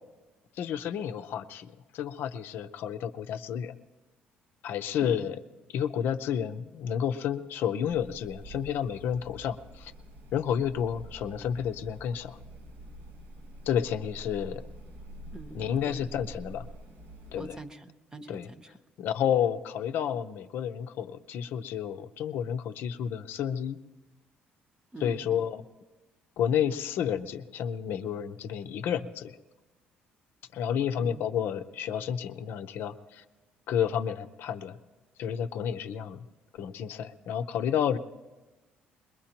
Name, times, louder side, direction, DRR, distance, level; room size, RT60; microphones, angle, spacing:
voice 1, 0.6-3.8 4.6-5.4 5.7-9.9 10.3-12.4 13.7-14.6 15.5-16.7 17.3-17.6 18.3-18.5 19.0-23.8 25.0-25.6 26.4-29.4 30.5-33.2 33.7-34.8 35.2-36.2 36.5-38.0, left 9 dB, 70° left, 8 dB, 0.7 m, -30 dB
voice 2, 5.0-5.3 15.3-16.1 17.3-18.8 24.9-25.4 31.0-31.3, right 2 dB, 20° right, 9 dB, 0.9 m, -44 dB
sound 1, 7.8-17.6, right 1 dB, 80° right, 2.1 m, -47 dB
22.0 x 21.0 x 2.9 m, 1.2 s
supercardioid pair, 85°, 4 cm